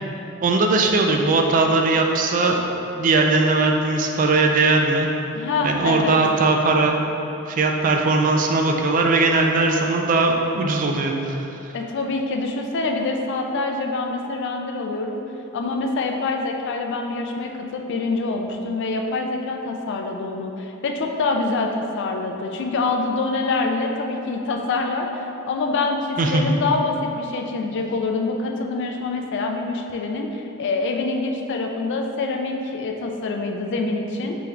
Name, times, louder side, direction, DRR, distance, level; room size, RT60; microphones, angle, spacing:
voice 1, 0.4-2.6 3.0-5.1 5.6-7.0 7.5-11.5 26.2-26.6, right 3 dB, 40° right, 2 dB, 0.3 m, -19 dB
voice 2, 5.3-6.2 11.7-15.2 15.5-34.4, left 3 dB, 55° left, 3 dB, 0.4 m, -25 dB
5.1 x 3.3 x 2.3 m, 2.9 s
head